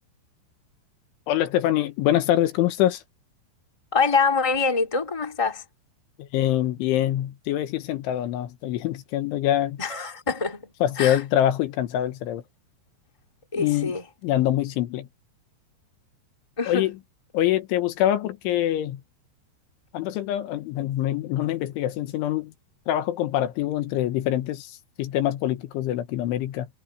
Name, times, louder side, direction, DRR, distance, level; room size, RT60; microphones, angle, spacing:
voice 1, 1.3-3.0 6.2-9.8 10.8-12.4 13.6-14.0 14.2-15.1 16.7-16.9 17.3-19.0 19.9-22.5 22.9-26.7, left 12 dB, 80° left, 3.8 m, -24 dB
voice 2, 3.9-5.6 9.8-11.2 13.5-14.0 16.6-16.9, left 4 dB, 10° left, 2.1 m, -25 dB
omnidirectional pair, 5.5 m